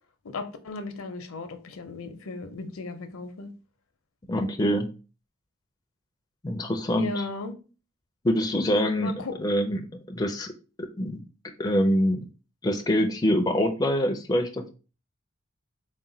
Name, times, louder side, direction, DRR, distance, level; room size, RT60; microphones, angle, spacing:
voice 1, 0.2-3.5 6.9-7.6 9.0-9.4, left 3 dB, 75° left, 0.6 m, -36 dB
voice 2, 4.3-4.9 6.4-7.1 8.2-9.1 9.4-9.8 10.1-10.5 11.0-11.2 11.6-12.2 12.6-14.7, equal, 15° left, 0.4 m, -24 dB
4.0 x 2.1 x 3.8 m
head